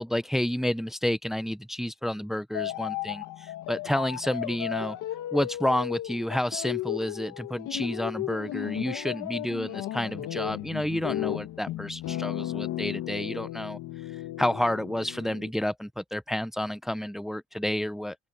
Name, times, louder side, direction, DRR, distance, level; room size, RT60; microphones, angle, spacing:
voice 1, 0.0-5.0 5.3-13.8 14.4-18.2, left 1 dB, ahead, 0.6 m, -30 dB
sound 1, 2.5-15.5, left 14 dB, 90° left, 1.9 m, -35 dB
open air
cardioid pair, 90°, 30 cm